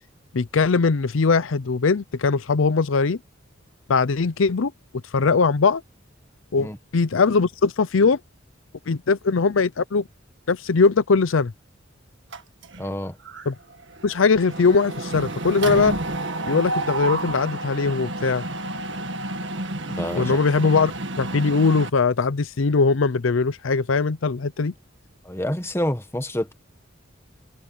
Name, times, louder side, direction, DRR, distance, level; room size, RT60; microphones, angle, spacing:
voice 1, 0.3-3.2 3.9-4.7 5.1-5.8 6.5-8.2 8.9-10.1 10.5-11.5 13.5-13.6 14.0-16.0 16.5-18.4 20.1-20.9 21.2-24.7, left 4 dB, 80° left, 0.6 m, -20 dB
Mechanisms, 12.3-12.9 13.3-13.5 13.7-21.9, right 2 dB, 65° right, 1.9 m, -30 dB
voice 2, 12.8-13.2 19.9-20.3 25.2-26.5, left 1 dB, 15° left, 1.5 m, -28 dB
head